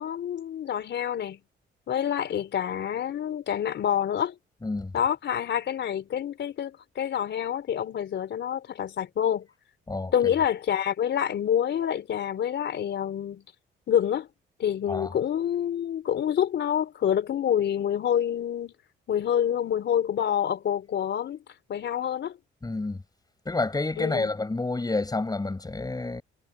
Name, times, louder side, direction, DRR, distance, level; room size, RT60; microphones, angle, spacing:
voice 1, 0.0-1.4 1.9-4.4 4.9-9.5 10.1-13.4 13.9-14.3 14.6-18.7 19.1-21.4 21.7-22.4 24.0-24.3, left 9 dB, 65° left, 4.0 m, -27 dB
voice 2, 4.6-4.9 9.9-10.1 14.9-15.1 22.6-23.0 23.4-26.2, left 3 dB, 20° left, 6.1 m, -29 dB
cardioid pair, 90°, 20 cm